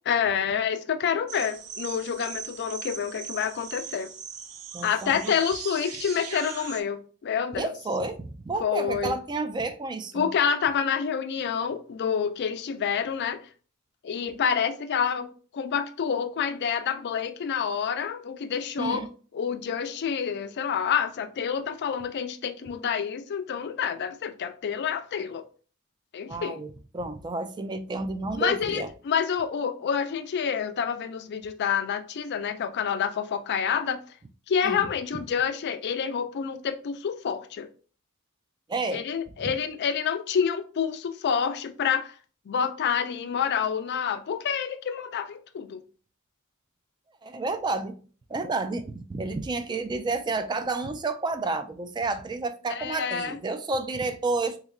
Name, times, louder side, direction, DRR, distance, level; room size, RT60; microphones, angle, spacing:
voice 1, 0.1-4.1 4.8-7.7 8.6-9.1 10.1-13.4 14.0-19.0 19.3-25.4 26.1-26.6 28.4-34.0 34.5-37.7 38.9-42.1 42.5-45.8 52.7-53.4, left 7 dB, 50° left, 0.4 m, -28 dB
sound 1, 1.3-6.8, right 7 dB, 85° right, 0.5 m, -39 dB
voice 2, 4.7-5.3 7.5-10.2 18.8-19.1 26.3-28.9 34.6-34.8 38.7-39.0 39.4-39.5 47.2-48.0 48.3-54.6, right 3 dB, 20° right, 0.3 m, -30 dB
3.5 x 3.1 x 2.3 m
head